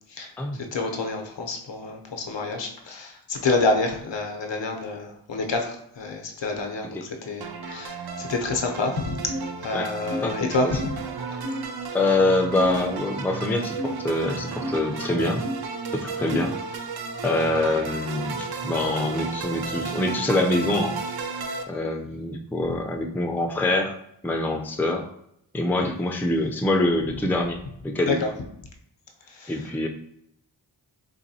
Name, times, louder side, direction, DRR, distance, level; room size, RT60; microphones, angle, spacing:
voice 1, 0.6-9.2 9.6-10.8 28.1-28.3 29.4-29.5, left 3 dB, 70° left, 3 dB, 0.7 m, -28 dB
sound 1, 7.4-21.6, right 4 dB, 55° right, 0.5 m, -33 dB
sound 2, 9.3-9.5 10.1-10.2 10.8-10.9 11.4-11.6 12.6-12.8 13.8-13.9 14.6-14.8 15.4-15.6 16.3-16.5, equal, 85° right, 1.4 m, -31 dB
voice 2, 10.2-10.8 11.9-15.4 15.9-16.5 17.2-20.9 21.7-24.0 24.2-25.1 25.5-28.2 29.5-29.9, left 2 dB, 5° left, 2 dB, 0.4 m, -25 dB
4.0 x 2.6 x 2.7 m, 0.72 s
wide cardioid pair, 45°, 45 cm